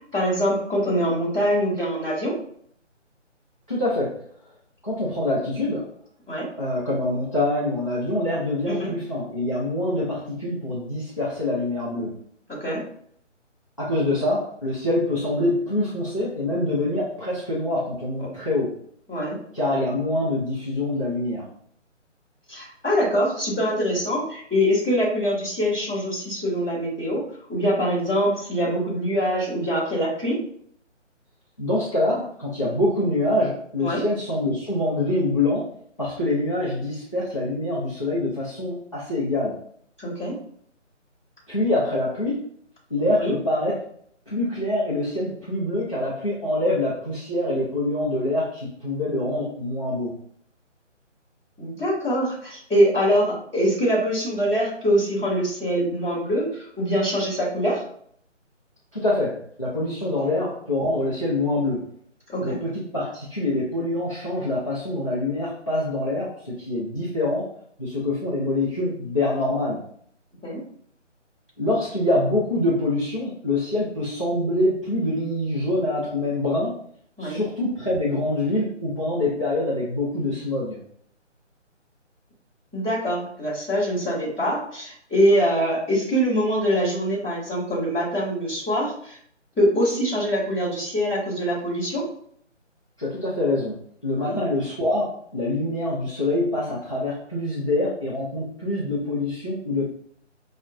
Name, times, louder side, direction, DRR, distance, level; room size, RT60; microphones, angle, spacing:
voice 1, 0.1-2.3 6.3-6.5 8.7-8.9 12.6-12.8 19.1-19.4 22.5-27.2 27.5-30.4 33.8-34.0 40.0-40.4 43.2-43.3 51.6-57.8 62.3-62.6 70.4-70.6 77.2-77.4 82.7-89.2 89.6-92.0 94.2-94.4, equal, 5° left, -21 dB, 0.8 m, -24 dB
voice 2, 3.7-4.2 4.8-5.9 6.6-12.1 13.8-18.7 19.5-21.4 31.6-35.7 36.0-39.6 41.5-42.5 42.9-43.8 44.3-50.1 58.9-61.8 62.4-67.5 67.8-69.8 71.6-76.8 77.2-80.8 93.0-93.8 94.0-99.8, left 1 dB, 25° left, -7 dB, 0.5 m, -25 dB
5.8 x 2.1 x 2.4 m, 0.62 s
figure-of-eight pair, 165°, 37 cm